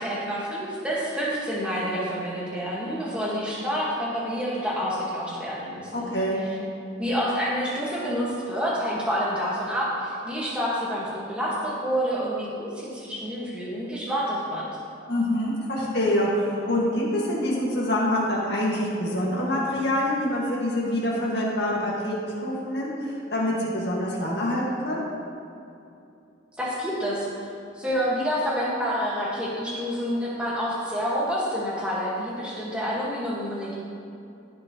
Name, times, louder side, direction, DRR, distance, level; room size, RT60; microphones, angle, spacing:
voice 1, 0.0-6.1 6.4-6.6 7.0-14.6 26.6-27.5 27.7-33.8, equal, 5° right, -7 dB, 1.7 m, -28 dB
voice 2, 5.9-6.4 15.1-25.0, left 1 dB, 60° left, -5 dB, 2.0 m, -26 dB
15.0 x 6.0 x 3.1 m, 2.6 s
head